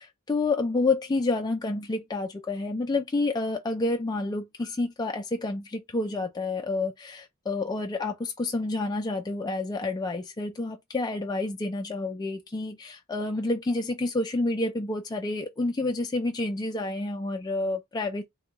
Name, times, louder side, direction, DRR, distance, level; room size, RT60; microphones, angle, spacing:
voice 1, 0.0-18.2, left 2 dB, 20° left, 0.3 m, -29 dB
3.4 x 2.2 x 2.9 m
head